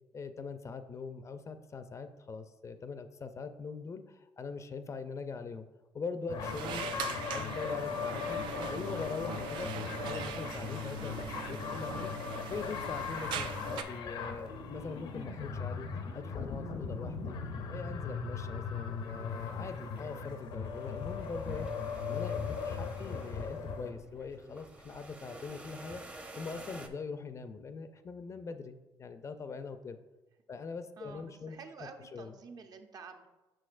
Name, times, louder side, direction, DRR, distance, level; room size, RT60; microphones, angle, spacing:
voice 1, 0.1-5.7 5.9-8.4 8.7-12.1 12.5-15.9 16.1-17.4 17.7-21.7 22.1-26.0 26.3-30.0 30.5-32.4, left 4 dB, 40° left, 10 dB, 0.4 m, -42 dB
sound 1, 6.3-23.9, left 5 dB, 75° left, 0.7 m, -38 dB
sound 2, 6.4-13.8, right 8 dB, 80° right, 0.4 m, -42 dB
sound 3, 20.7-26.9, right 2 dB, 15° right, 0.6 m, -50 dB
voice 2, 31.0-33.3, right 5 dB, 50° right, 5 dB, 0.7 m, -49 dB
6.3 x 6.2 x 2.5 m, 1.1 s
cardioid pair, 85°, 8 cm